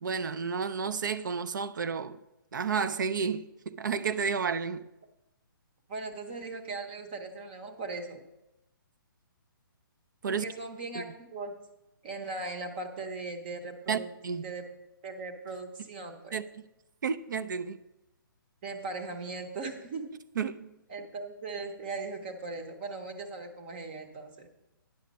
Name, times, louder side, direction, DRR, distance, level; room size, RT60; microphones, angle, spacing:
voice 1, 0.0-2.2 2.5-4.8 10.2-10.4 10.9-11.0 13.9-14.0 14.2-14.5 16.3-16.6 17.0-17.8 20.4-20.7, right 6 dB, 60° right, 0.5 m, -31 dB
voice 2, 5.9-8.2 10.3-11.6 12.0-14.1 14.4-14.7 15.0-16.4 18.6-20.1 20.9-24.5, right 3 dB, 25° right, 0.9 m, -39 dB
9.4 x 6.7 x 5.2 m
hypercardioid pair, 170°, 12 cm